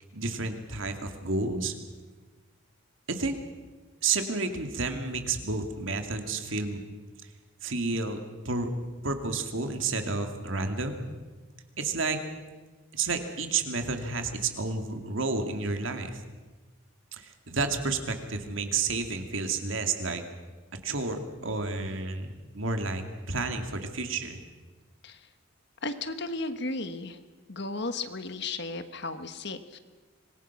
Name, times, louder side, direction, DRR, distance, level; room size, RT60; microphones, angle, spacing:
voice 1, 0.1-1.7 3.1-3.4 4.0-6.8 7.6-8.2 8.4-8.7 9.0-11.1 11.8-12.2 12.9-16.2 17.1-20.2 20.8-23.0 23.3-24.4, right 3 dB, 70° right, 5 dB, 2.4 m, -30 dB
voice 2, 25.8-27.2 27.5-29.8, left 3 dB, 50° left, 10 dB, 1.3 m, -34 dB
25.5 x 21.0 x 6.0 m, 1.3 s
head